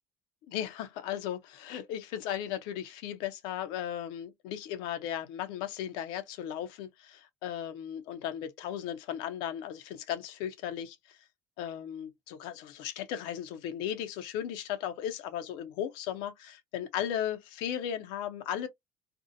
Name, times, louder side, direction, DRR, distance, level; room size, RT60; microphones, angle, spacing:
voice 1, 0.5-11.2 11.6-18.7, left 10 dB, 75° left, 0.5 m, -36 dB
2.6 x 2.0 x 2.5 m
supercardioid pair, 110°, 8 cm